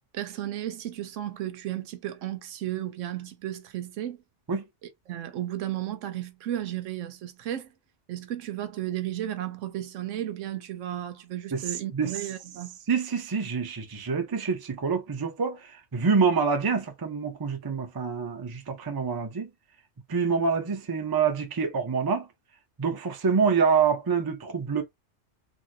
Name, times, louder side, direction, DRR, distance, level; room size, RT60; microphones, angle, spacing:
voice 1, 0.1-4.2 5.1-7.7 8.1-12.8, right 12 dB, 85° right, 1.0 m, -34 dB
voice 2, 12.9-19.5 20.1-22.3 22.8-24.8, right 5 dB, 30° right, 0.4 m, -26 dB
3.1 x 2.6 x 2.5 m
omnidirectional pair, 1.3 m